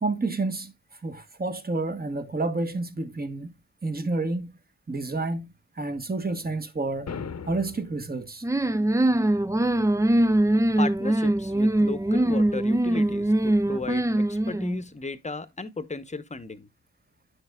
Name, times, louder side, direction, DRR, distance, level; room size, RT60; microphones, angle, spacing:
voice 1, 0.0-0.7 1.0-3.5 3.8-4.5 4.9-7.1 7.5-8.4, right 3 dB, 30° right, 1.3 m, -29 dB
sound 1, 7.1-8.1, left 6 dB, 55° left, 0.9 m, -37 dB
sound 2, 8.4-14.8, right 1 dB, 10° right, 0.4 m, -22 dB
voice 2, 10.8-16.7, left 3 dB, 20° left, 1.0 m, -35 dB
9.6 x 6.4 x 2.3 m
cardioid pair, 45°, 31 cm